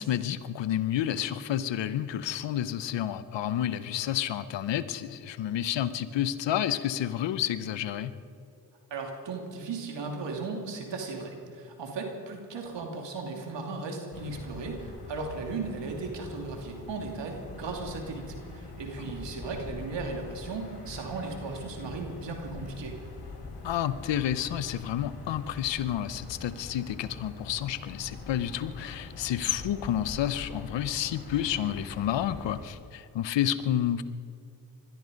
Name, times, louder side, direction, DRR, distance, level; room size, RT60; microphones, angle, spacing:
voice 1, 0.0-8.1 23.6-34.0, left 11 dB, 90° left, 14 dB, 0.8 m, -30 dB
voice 2, 8.9-23.0, right 3 dB, 85° right, 2 dB, 2.7 m, -36 dB
sound 1, 14.1-32.7, left 3 dB, 65° left, 3.6 m, -43 dB
21.0 x 13.0 x 5.2 m, 2.4 s
supercardioid pair, 45°, 42 cm